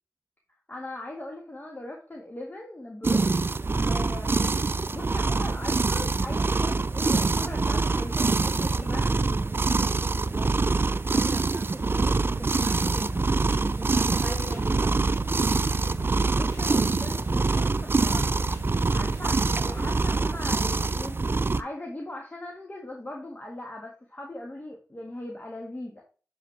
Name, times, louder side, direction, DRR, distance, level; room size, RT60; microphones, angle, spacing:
voice 1, 0.7-3.3 3.8-4.6 4.9-9.0 14.2-15.0 16.3-18.2 18.9-21.2 21.6-26.0, left 1 dB, 30° left, 1.6 m, -39 dB
sound 1, 3.0-21.6, right 3 dB, 40° right, 0.4 m, -25 dB
voice 2, 3.7-4.0 8.5-10.6 10.9-13.3 13.6-15.4, right 2 dB, 20° right, 0.7 m, -40 dB
sound 2, 12.0-20.0, left 3 dB, 50° left, 3.5 m, -45 dB
7.4 x 5.3 x 3.4 m
cardioid pair, 50°, 6 cm